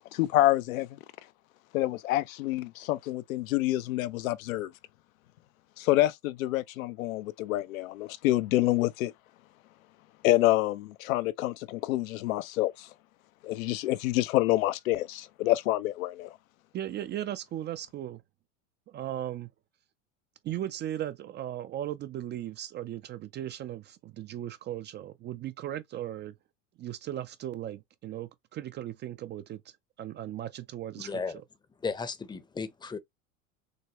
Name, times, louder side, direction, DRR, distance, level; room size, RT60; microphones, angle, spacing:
voice 1, 0.1-1.0 1.7-4.7 5.8-9.1 10.2-12.9 13.4-16.4, left 16 dB, 80° left, 0.7 m, -27 dB
voice 2, 16.7-18.2 18.9-19.5 20.4-26.3 26.8-29.6 30.0-31.4, right 12 dB, 25° right, 0.4 m, -37 dB
voice 3, 31.0-31.4 31.8-33.0, left 5 dB, 10° left, 0.7 m, -35 dB
6.5 x 2.2 x 2.9 m
supercardioid pair, 110°, 41 cm